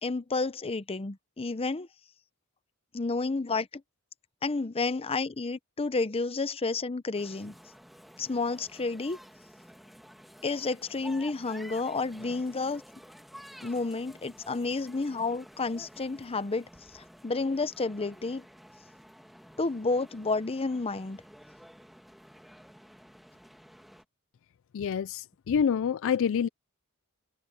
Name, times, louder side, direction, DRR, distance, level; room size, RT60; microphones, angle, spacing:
voice 1, 0.0-1.9 2.9-3.7 4.4-7.6 8.2-9.2 10.4-12.8 13.6-16.7 16.9-18.4 19.6-21.2, left 3 dB, 25° left, 0.6 m, -30 dB
sound 1, 7.1-24.0, equal, ahead, 1.5 m, -52 dB
voice 2, 24.7-26.5, left 7 dB, 60° left, 0.4 m, -27 dB
head